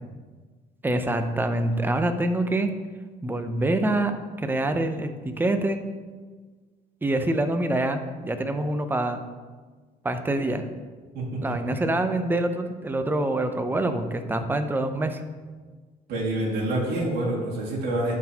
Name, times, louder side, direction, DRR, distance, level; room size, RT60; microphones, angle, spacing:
voice 1, 0.8-2.7 3.2-5.8 7.0-9.2 10.0-10.7 11.4-15.2, right 1 dB, 10° right, 8 dB, 0.5 m, -25 dB
voice 2, 11.1-11.6 16.1-18.1, right 1 dB, 75° right, -5 dB, 2.0 m, -27 dB
11.5 x 4.0 x 2.8 m, 1.4 s
cardioid pair, 110°, 17 cm